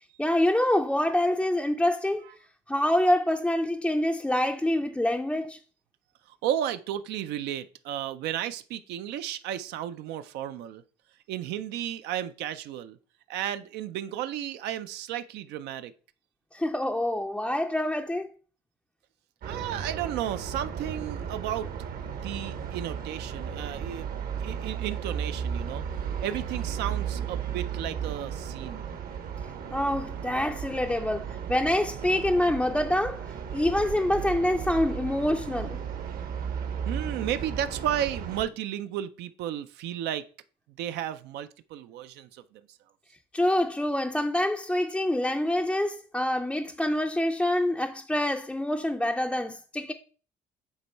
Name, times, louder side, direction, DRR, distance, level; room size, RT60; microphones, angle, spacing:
voice 1, 0.2-2.2 2.7-5.6 16.5-18.3 29.7-35.8 43.3-49.9, left 1 dB, 5° left, 0.4 m, -26 dB
voice 2, 6.3-10.8 11.3-13.0 13.3-15.9 19.5-21.7 22.2-24.1 24.4-25.8 26.2-28.8 36.1-36.5 36.8-40.3 40.8-42.6, right 11 dB, 85° right, 0.4 m, -33 dB
sound 1, 19.4-38.4, right 7 dB, 60° right, 0.9 m, -35 dB
8.1 x 3.0 x 4.5 m
cardioid pair, 110°, 17 cm